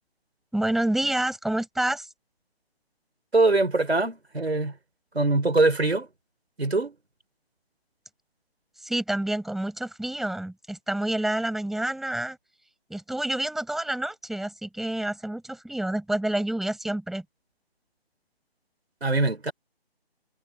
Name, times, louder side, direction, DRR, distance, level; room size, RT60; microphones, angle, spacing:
voice 1, 0.5-2.1 8.8-12.4 12.9-17.2, right 1 dB, ahead, 4.9 m, -28 dB
voice 2, 3.3-4.7 5.1-6.1 6.6-7.0 19.0-19.5, right 2 dB, 90° right, 5.3 m, -22 dB
figure-of-eight pair, 155°, 31 cm